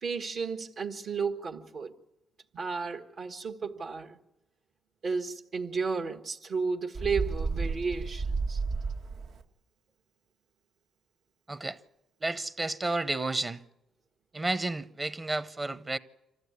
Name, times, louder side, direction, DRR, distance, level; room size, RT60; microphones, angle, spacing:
voice 1, 0.0-1.9 2.5-4.2 5.0-8.6, right 5 dB, 60° right, 1.5 m, -33 dB
Bird, 6.9-9.4, right 4 dB, 75° right, 1.6 m, -32 dB
voice 2, 12.2-13.6 14.3-16.0, right 2 dB, 25° right, 0.9 m, -31 dB
26.0 x 14.5 x 9.6 m
cardioid pair, 90°, 0 cm